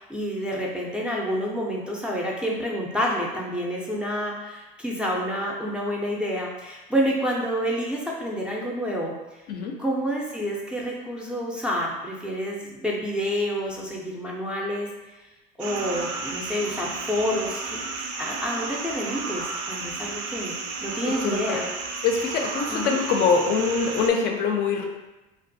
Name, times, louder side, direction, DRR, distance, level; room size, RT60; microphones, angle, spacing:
voice 1, 0.0-9.1 9.8-14.9 15.6-17.8 18.2-20.5 20.8-21.6 22.7-23.0, equal, 5° right, -4 dB, 0.4 m, -28 dB
sound 1, 15.6-24.1, right 4 dB, 65° right, 0.4 m, -33 dB
voice 2, 21.0-21.7 22.0-24.9, left 5 dB, 55° left, 2 dB, 0.4 m, -24 dB
2.4 x 2.2 x 2.6 m, 1.0 s
supercardioid pair, 105°, 20 cm